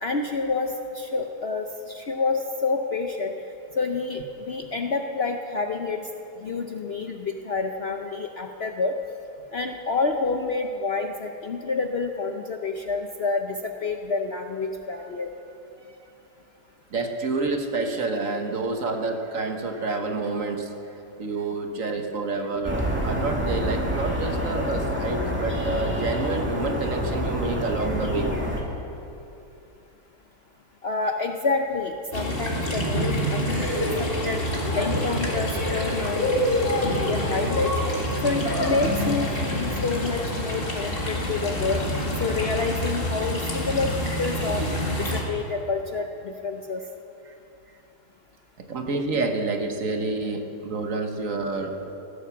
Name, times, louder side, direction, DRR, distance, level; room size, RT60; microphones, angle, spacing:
voice 1, 0.0-3.3 3.8-6.1 6.4-9.0 9.5-15.3 30.8-33.7 34.0-34.4 34.8-36.2 36.8-37.7 38.2-41.8 42.2-44.6 45.1-46.8, left 4 dB, 50° left, 4 dB, 0.8 m, -28 dB
voice 2, 16.9-20.8 21.2-28.4 47.3-47.4 48.6-51.9, right 3 dB, 55° right, 4 dB, 1.5 m, -28 dB
sound 1, 22.6-28.6, equal, 5° right, 2.0 m, -27 dB
sound 2, 32.1-45.2, equal, 35° left, 2.3 m, -26 dB
16.5 x 12.0 x 7.1 m, 2.8 s
omnidirectional pair, 1.8 m